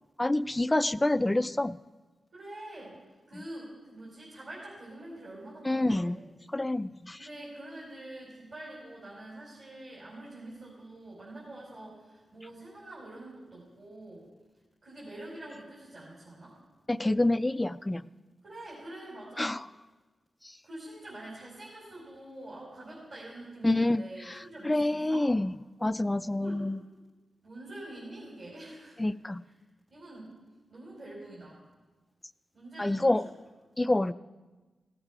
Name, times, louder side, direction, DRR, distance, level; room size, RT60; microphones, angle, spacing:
voice 1, 0.2-1.8 5.6-6.2 6.5-7.2 16.9-18.0 19.4-19.6 23.6-26.8 29.0-29.4 32.8-33.2 33.8-34.1, left 1 dB, 15° left, 15 dB, 0.3 m, -27 dB
voice 2, 2.3-3.0 3.3-6.2 7.2-14.3 14.8-16.6 18.4-19.5 20.6-25.3 26.3-26.6 27.4-29.0 29.4-29.5 29.9-30.3 30.7-31.6 32.5-33.3, right 1 dB, 50° right, -7 dB, 4.8 m, -45 dB
16.5 x 8.1 x 6.0 m, 1.2 s
cardioid pair, 70°, 0 cm